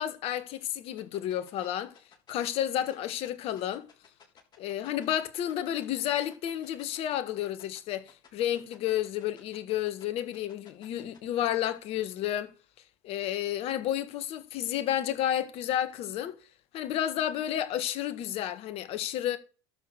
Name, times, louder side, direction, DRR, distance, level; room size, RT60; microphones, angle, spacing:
voice 1, 0.0-1.9 2.3-3.8 4.6-12.5 13.0-16.4 16.7-19.4, left 11 dB, 60° left, 1.6 m, -31 dB
sound 1, 1.0-11.2, left 7 dB, 40° left, 7.3 m, -55 dB
13.0 x 6.2 x 6.4 m
hypercardioid pair, 80°, 11 cm